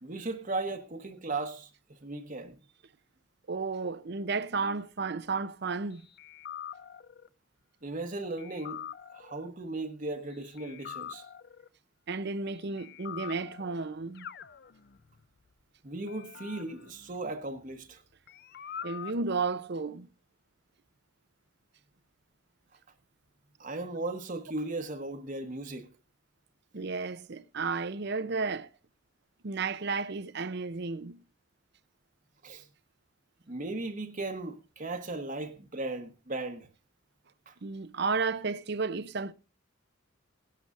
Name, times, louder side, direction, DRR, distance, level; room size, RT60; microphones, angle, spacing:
voice 1, 0.0-2.6 7.8-11.3 15.8-18.0 23.6-25.9 32.4-32.7 33.5-36.7 37.5-37.6, right 2 dB, 40° right, 1.1 m, -37 dB
voice 2, 3.5-6.0 12.1-14.3 18.8-20.1 26.7-28.7 29.4-31.2 37.6-39.3, right 4 dB, 55° right, 0.7 m, -33 dB
sound 1, 6.2-7.3 8.4-9.5 10.6-11.7 12.8-13.9 14.1-15.2 16.1-17.9 18.3-19.2, left 9 dB, 55° left, 0.6 m, -44 dB
17.0 x 12.0 x 2.6 m
head